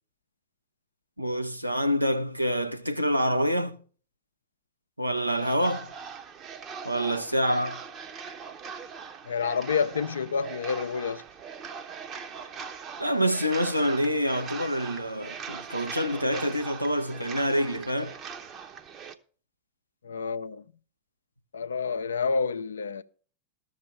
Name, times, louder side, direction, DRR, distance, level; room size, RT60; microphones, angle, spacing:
voice 1, 1.2-3.8 5.0-5.9 6.8-7.9 13.0-18.2, equal, 90° right, 0.8 m, -27 dB
sound 1, 5.2-19.1, right 6 dB, 30° right, 0.8 m, -41 dB
voice 2, 9.3-11.2 20.0-20.6 21.5-23.0, left 5 dB, 70° left, 0.5 m, -29 dB
13.5 x 6.4 x 5.5 m
figure-of-eight pair, 90°, 0 cm